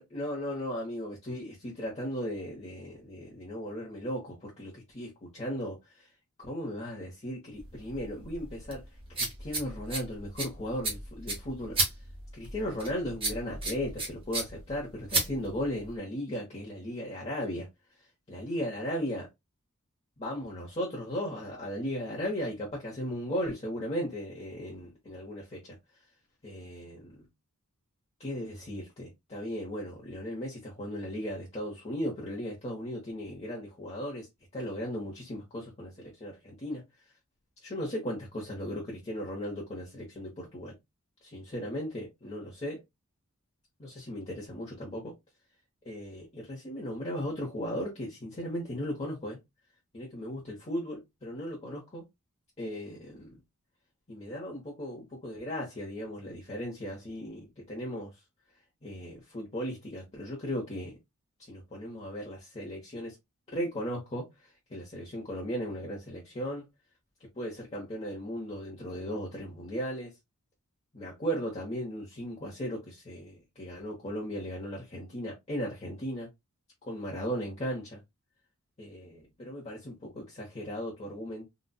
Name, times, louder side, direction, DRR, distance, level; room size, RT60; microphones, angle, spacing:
voice 1, 0.0-6.1 6.4-8.8 9.1-11.8 12.3-17.7 18.0-19.3 20.2-25.8 26.4-27.3 28.2-34.3 34.5-36.8 37.6-40.7 41.2-42.8 43.8-45.1 45.8-49.4 49.9-52.0 52.6-53.4 54.1-58.1 58.8-61.0 61.5-63.2 63.5-66.7 67.2-70.1 70.9-76.3 76.8-78.0 78.8-81.5, equal, 30° left, 1.0 m, -36 dB
sound 1, 7.6-16.0, right 3 dB, 25° right, 1.2 m, -35 dB
4.0 x 2.3 x 2.3 m
head